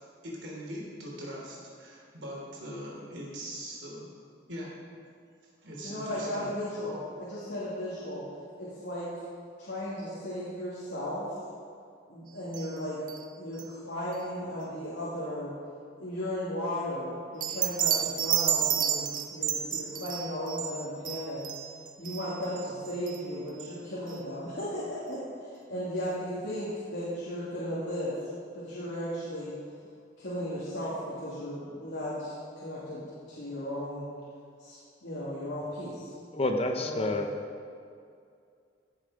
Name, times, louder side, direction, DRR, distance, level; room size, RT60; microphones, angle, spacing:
voice 1, 0.2-4.1 4.5-4.7 5.6-6.5, equal, 80° right, -3 dB, 3.4 m, -41 dB
voice 2, 5.8-8.3 8.6-9.1 9.6-11.3 12.1-13.0 13.4-15.5 16.0-21.4 22.0-28.2 28.5-29.5 30.2-34.1 34.6-34.8 35.0-36.1 36.8-37.1, equal, 85° left, -10 dB, 2.7 m, -35 dB
sound 1, 12.5-12.8 13.1-13.3 13.6-13.7 17.4-23.2 23.6-23.7 24.1-24.2 24.6-24.7, right 10 dB, 45° right, 0.7 m, -31 dB
voice 3, 36.3-37.3, left 2 dB, 35° left, 4 dB, 0.7 m, -28 dB
16.5 x 7.0 x 5.1 m, 2.3 s
head